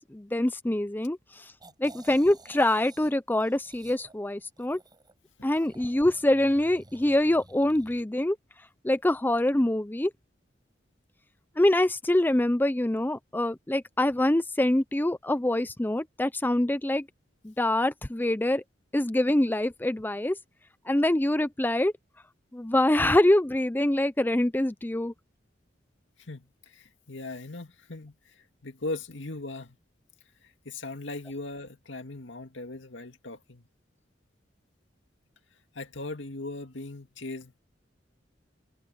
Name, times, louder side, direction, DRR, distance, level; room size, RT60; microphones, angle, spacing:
voice 1, 0.1-1.4 1.8-4.8 5.4-8.4 8.8-10.1 11.6-17.0 17.4-18.6 18.9-20.4 20.9-21.9 22.5-25.1, left 1 dB, 10° left, 0.5 m, -25 dB
sound 1, 1.6-3.1 3.4-5.1 5.5-8.0, right 2 dB, 25° right, 5.8 m, -53 dB
voice 2, 26.2-29.8 30.4-33.7 35.7-37.6, left 2 dB, 80° left, 2.2 m, -39 dB
head